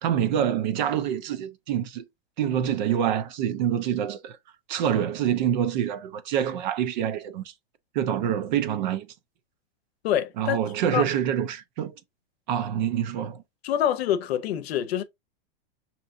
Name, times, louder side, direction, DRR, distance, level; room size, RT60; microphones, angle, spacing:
voice 1, 0.0-2.0 2.4-4.4 4.7-7.4 7.9-9.1 10.4-11.9 12.5-13.4, right 9 dB, 45° right, 0.5 m, -26 dB
voice 2, 10.0-11.0 13.6-15.0, left 10 dB, 75° left, 0.7 m, -26 dB
5.5 x 2.9 x 2.5 m
supercardioid pair, 160°, 31 cm